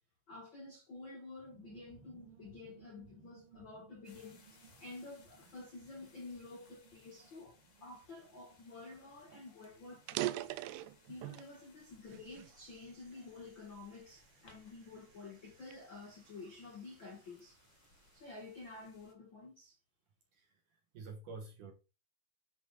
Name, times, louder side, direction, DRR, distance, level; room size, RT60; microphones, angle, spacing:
voice 1, 0.3-10.7 11.1-17.6 18.1-19.8, left 3 dB, 85° left, 1.0 m, -51 dB
sound 1, 1.3-17.6 17.9-18.0 18.2-18.6, right 6 dB, 50° right, 1.9 m, -65 dB
sound 2, 4.0-19.1, left 4 dB, 65° left, 1.1 m, -67 dB
sound 3, 8.9-9.0 9.3-9.4 9.9-11.6 12.1-13.4 14.0-14.2 14.8-16.9, right 16 dB, 85° right, 2.4 m, -41 dB
voice 2, 20.3-21.7, right 4 dB, 65° right, 2.1 m, -49 dB
10.5 x 4.4 x 4.1 m
omnidirectional pair, 5.2 m